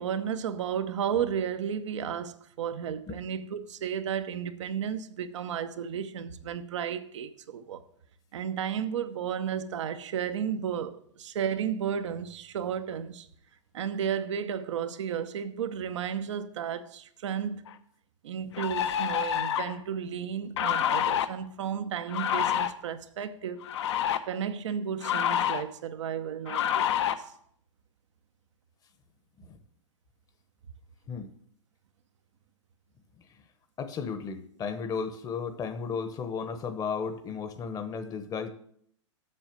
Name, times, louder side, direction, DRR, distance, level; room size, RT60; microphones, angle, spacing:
voice 1, 0.0-7.8 8.3-13.3 13.7-17.6 18.2-23.7 24.3-27.1, right 8 dB, 70° right, 0.9 m, -33 dB
sound 1, 17.7-17.8 18.5-19.8 20.6-21.3 22.1-22.7 23.6-24.2 25.0-25.6 26.5-27.1, left 10 dB, 65° left, 0.9 m, -27 dB
voice 2, 33.8-38.5, left 6 dB, 25° left, 1.0 m, -34 dB
7.8 x 6.4 x 7.4 m
hypercardioid pair, 125°, 16 cm